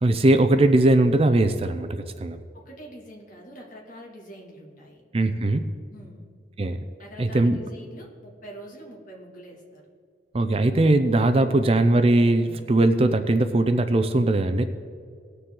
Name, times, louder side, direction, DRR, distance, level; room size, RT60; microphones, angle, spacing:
voice 1, 0.0-2.4 5.1-5.6 6.6-6.8 7.2-7.6 10.3-14.6, right 2 dB, 30° right, 9 dB, 0.5 m, -20 dB
voice 2, 2.5-5.0 5.9-6.2 7.0-9.8, right 1 dB, 45° left, -1 dB, 2.2 m, -44 dB
18.5 x 6.8 x 3.8 m, 2.3 s
head